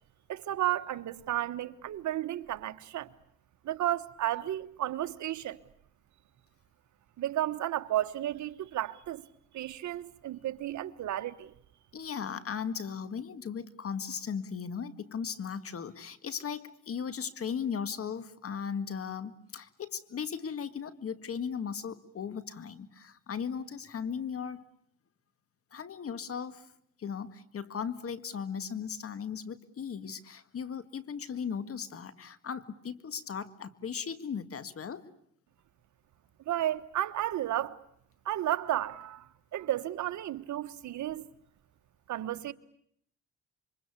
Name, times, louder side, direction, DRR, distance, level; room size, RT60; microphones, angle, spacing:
voice 1, 0.3-3.1 3.6-5.6 7.2-9.2 9.5-11.5 36.5-37.8 38.2-41.3 42.1-42.5, right 13 dB, 70° right, 1.3 m, -33 dB
voice 2, 11.9-24.6 25.7-26.7 27.0-35.1, left 7 dB, 50° left, 1.9 m, -37 dB
27.5 x 24.5 x 8.4 m
cardioid pair, 90°, 30 cm